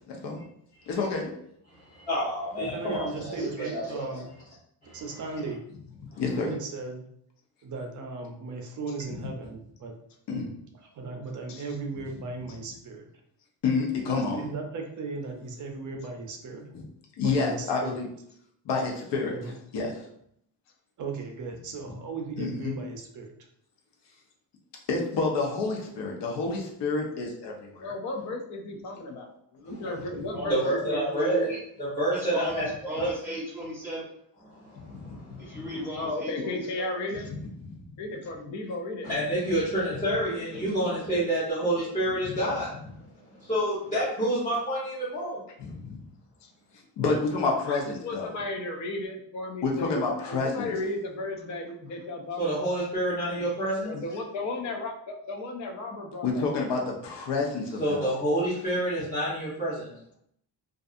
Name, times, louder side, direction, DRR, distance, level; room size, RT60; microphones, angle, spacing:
voice 1, 0.1-0.4 0.9-1.3 6.2-6.5 10.3-10.5 13.6-14.4 17.2-18.1 18.7-19.4 19.7-19.9 22.4-22.8 24.9-27.9 34.9-35.5 37.3-37.4 37.6-37.7 45.6-46.0 47.0-48.3 49.6-50.7 56.2-58.1, left 4 dB, 75° left, 0 dB, 0.8 m, -29 dB
voice 2, 1.7-4.2 4.8-5.0 6.1-6.2 30.5-31.5 31.8-32.7 33.0-33.1 34.6-35.6 39.0-42.7 43.3-45.4 52.4-53.9 57.8-59.9, right 1 dB, 20° left, -13 dB, 0.9 m, -28 dB
voice 3, 2.6-4.3 4.9-5.6 6.4-7.0 7.6-9.9 10.9-13.1 14.1-16.6 17.2-18.0 19.3-19.5 21.0-23.3, right 4 dB, 45° right, 2 dB, 0.5 m, -36 dB
voice 4, 27.8-31.5 35.9-37.3 38.0-39.1 40.5-40.8 46.4-46.5 47.7-52.8 53.8-56.5, left 2 dB, 45° left, 3 dB, 0.4 m, -35 dB
voice 5, 30.1-30.6 31.5-31.6 32.1-34.1 35.4-36.8, equal, 5° right, -8 dB, 1.1 m, -36 dB
2.5 x 2.4 x 2.4 m, 0.71 s
cardioid pair, 155°, 42 cm